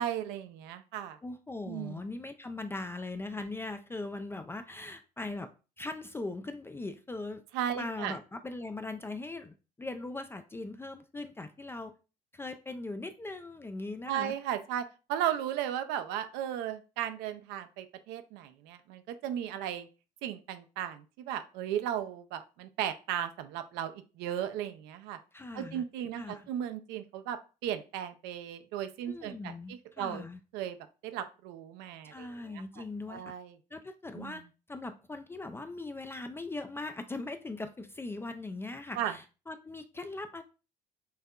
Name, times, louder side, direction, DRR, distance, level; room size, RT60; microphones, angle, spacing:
voice 1, 0.0-1.2 1.7-2.0 7.5-8.2 14.1-19.9 20.2-25.2 25.5-30.2 30.5-30.8 31.0-33.5 34.2-34.4 39.0-39.1, right 10 dB, 55° right, 9 dB, 0.5 m, -36 dB
voice 2, 1.2-5.5 5.8-7.4 7.7-11.9 12.3-14.3 25.3-25.8 26.1-26.5 29.1-30.4 32.0-33.2 33.7-34.4 34.7-40.4, left 2 dB, 10° left, 8 dB, 0.3 m, -40 dB
5.6 x 2.7 x 2.3 m, 0.32 s
figure-of-eight pair, 60°, 21 cm